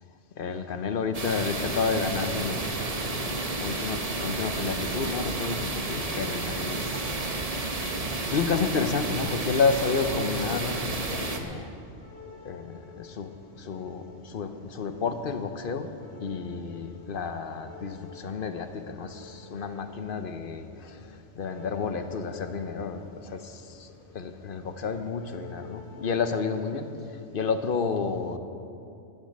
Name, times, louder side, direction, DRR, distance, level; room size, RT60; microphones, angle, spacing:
voice 1, 0.4-7.8 8.3-11.7 12.4-15.9 16.2-28.4, left 5 dB, 50° left, 8 dB, 1.0 m, -31 dB
sound 1, 1.1-11.4, right 2 dB, 35° right, 1.1 m, -31 dB
sound 2, 7.7-27.1, left 5 dB, 10° left, 2.6 m, -51 dB
19.5 x 7.4 x 6.5 m, 2.7 s
omnidirectional pair, 1.2 m